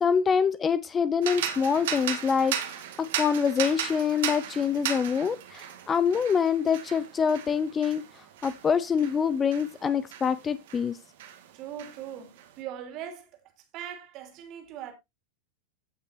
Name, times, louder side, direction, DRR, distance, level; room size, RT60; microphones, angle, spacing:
voice 1, 0.0-2.5 3.0-8.0 8.4-11.0, left 6 dB, 20° left, 0.6 m, -25 dB
sound 1, 1.2-10.9 11.2-12.5, right 9 dB, 55° right, 1.8 m, -36 dB
voice 2, 11.5-13.4 13.7-14.9, right 10 dB, 40° right, 2.8 m, -40 dB
15.5 x 6.0 x 2.7 m
figure-of-eight pair, 90°, 0 cm